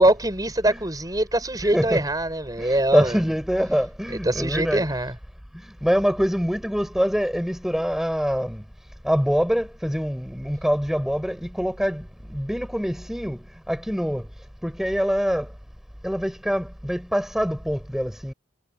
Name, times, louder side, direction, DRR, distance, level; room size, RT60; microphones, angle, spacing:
voice 1, 0.0-3.2 4.1-5.1, right 1 dB, 20° right, 6.4 m, -23 dB
voice 2, 2.6-4.9 5.8-8.6 9.0-14.3 14.6-15.5 16.0-18.3, equal, ahead, 5.6 m, -25 dB
head